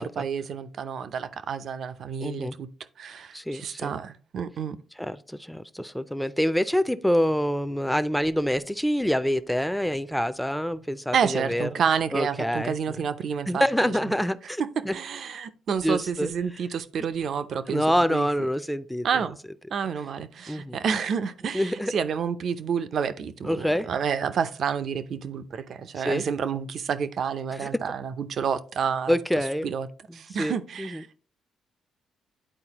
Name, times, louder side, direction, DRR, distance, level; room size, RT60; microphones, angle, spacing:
voice 1, 0.0-2.7 3.0-4.8 11.1-13.9 14.6-18.3 19.0-19.4 19.7-29.2 29.6-29.9 30.1-31.2, right 7 dB, 60° right, 0.5 m, -29 dB
voice 2, 2.2-2.6 3.3-3.9 5.0-11.7 12.1-12.7 13.5-14.9 15.8-16.3 17.7-19.3 20.5-20.8 21.5-21.9 23.4-23.9 26.0-26.3 27.5-27.7 29.1-29.7 30.1-31.0, equal, ahead, 0.5 m, -26 dB
10.0 x 4.3 x 2.9 m
cardioid pair, 90°, 0 cm